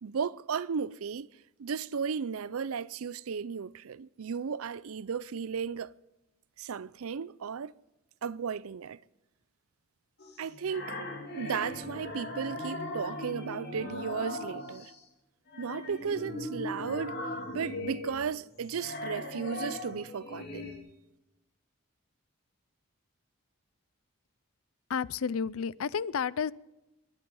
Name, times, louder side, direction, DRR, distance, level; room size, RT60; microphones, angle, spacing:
voice 1, 0.0-1.3 1.6-5.9 6.6-7.7 8.2-9.0 10.4-11.0 11.4-14.9 15.6-17.2 17.5-20.7, right 6 dB, 80° right, 0.5 m, -35 dB
sound 1, 10.2-15.0 15.5-20.8, left 1 dB, 50° left, 2.7 m, -39 dB
voice 2, 24.9-26.5, left 6 dB, 75° left, 0.5 m, -31 dB
22.0 x 9.7 x 5.5 m
head